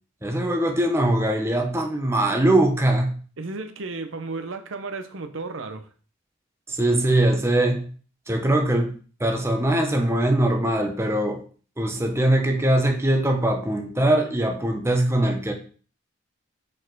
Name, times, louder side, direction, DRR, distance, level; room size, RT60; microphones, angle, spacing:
voice 1, 0.2-3.1 6.7-7.9 8.3-11.4 11.8-15.5, right 1 dB, 15° right, 0.8 m, -22 dB
voice 2, 3.4-5.9, right 3 dB, 75° right, 0.7 m, -33 dB
4.9 x 4.3 x 4.5 m
head